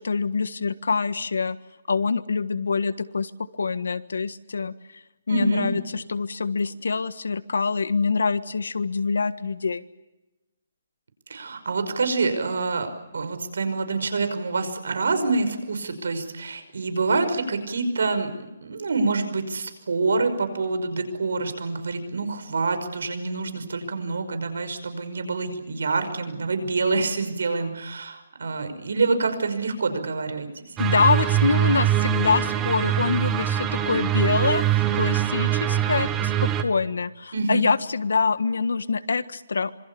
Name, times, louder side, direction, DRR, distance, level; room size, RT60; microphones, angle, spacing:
voice 1, 0.0-1.6 1.9-3.3 3.6-4.7 5.3-9.8 30.8-39.7, left 4 dB, 90° left, 13 dB, 1.5 m, -25 dB
voice 2, 5.3-5.8 11.3-18.3 18.6-30.8 37.3-37.7, right 3 dB, 75° right, 9 dB, 5.6 m, -26 dB
sound 1, 30.8-36.6, right 11 dB, 15° right, 1.3 m, -23 dB
26.5 x 25.5 x 7.1 m, 1.0 s
hypercardioid pair, 170°, 0 cm